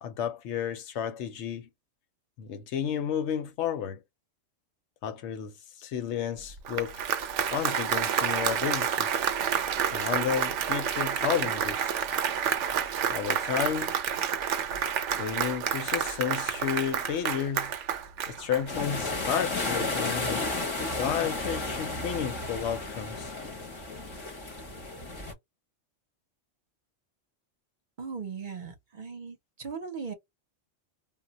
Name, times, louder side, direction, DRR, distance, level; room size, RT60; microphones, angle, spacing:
voice 1, 0.0-1.7 2.4-4.0 5.0-7.0 7.5-9.1 9.9-12.0 13.1-13.9 15.2-17.7 18.3-20.5 20.9-23.3, left 8 dB, 75° left, 0.8 m, -32 dB
Applause, 6.5-19.1, right 8 dB, 75° right, 0.9 m, -29 dB
sound 1, 18.7-25.3, left 2 dB, 30° left, 0.7 m, -33 dB
voice 2, 28.0-30.1, right 5 dB, 50° right, 0.7 m, -38 dB
2.2 x 2.1 x 3.8 m
omnidirectional pair, 1.2 m